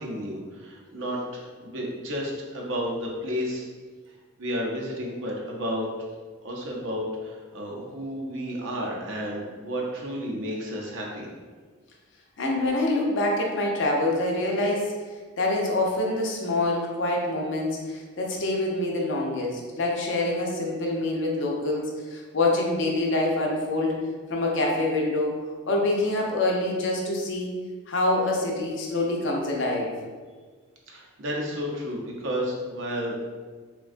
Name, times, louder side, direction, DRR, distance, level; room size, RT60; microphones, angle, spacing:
voice 1, 0.0-3.7 4.4-5.9 6.4-11.3 30.9-33.2, equal, 55° right, -2 dB, 0.6 m, -32 dB
voice 2, 12.4-15.0 15.4-25.3 25.7-27.5 27.9-29.9, left 2 dB, 55° left, -1 dB, 0.5 m, -26 dB
3.5 x 2.2 x 2.4 m, 1.5 s
head